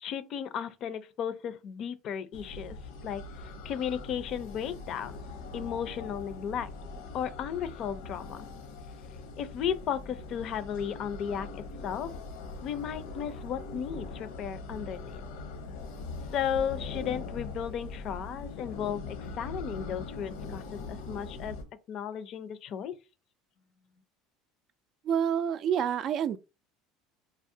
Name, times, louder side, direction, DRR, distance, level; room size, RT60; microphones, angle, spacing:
voice 1, 0.0-2.8 3.0-5.2 5.5-6.7 7.1-8.5 9.4-12.1 12.6-15.2 16.3-21.6 21.9-23.0, left 8 dB, 50° left, 0.5 m, -35 dB
sound 1, 2.3-21.6, left 3 dB, 90° left, 0.9 m, -41 dB
voice 2, 25.0-26.4, right 8 dB, 50° right, 0.3 m, -28 dB
3.5 x 2.0 x 2.7 m
supercardioid pair, 110°, 0 cm